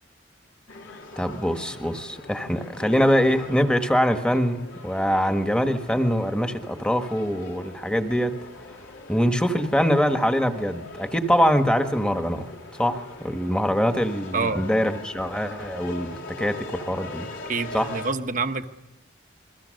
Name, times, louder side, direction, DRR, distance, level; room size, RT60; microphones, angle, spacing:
sound 1, 0.7-18.1, left 2 dB, 80° left, 3.6 m, -41 dB
voice 1, 1.2-8.3 9.1-12.5 12.8-17.3 17.7-17.9, equal, 5° left, 6 dB, 1.5 m, -23 dB
voice 2, 14.3-14.7 17.5-18.7, right 4 dB, 40° right, 8 dB, 1.0 m, -27 dB
28.5 x 22.5 x 6.6 m, 0.89 s
head